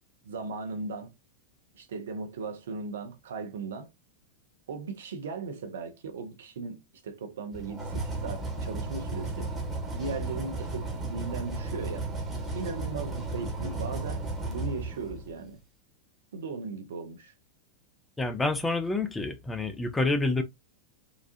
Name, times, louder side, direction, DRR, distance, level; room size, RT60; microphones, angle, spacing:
voice 1, 0.2-1.1 1.7-3.9 4.7-9.5 9.9-12.1 12.5-15.6 16.3-17.3, right 4 dB, 60° right, 0.7 m, -37 dB
sound 1, 7.5-15.5, right 2 dB, 15° right, 1.2 m, -34 dB
voice 2, 18.2-20.4, left 2 dB, 10° left, 0.5 m, -28 dB
3.9 x 2.4 x 2.5 m
figure-of-eight pair, 90°, 0 cm